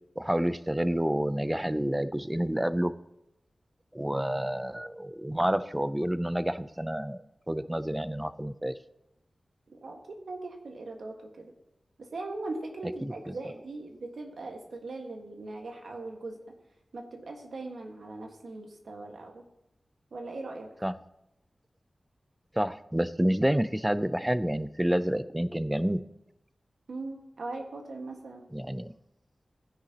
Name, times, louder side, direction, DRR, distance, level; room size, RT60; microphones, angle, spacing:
voice 1, 0.2-2.9 3.9-7.2 7.5-8.7 13.0-13.1 20.8-20.9 22.5-26.0 28.5-28.9, right 1 dB, 10° right, 14 dB, 0.4 m, -29 dB
voice 2, 9.7-11.5 12.0-16.4 16.9-19.4 20.1-20.7 26.9-28.4, right 2 dB, 85° right, 2 dB, 1.6 m, -40 dB
15.5 x 9.8 x 2.9 m, 0.86 s
wide cardioid pair, 95°, 0 cm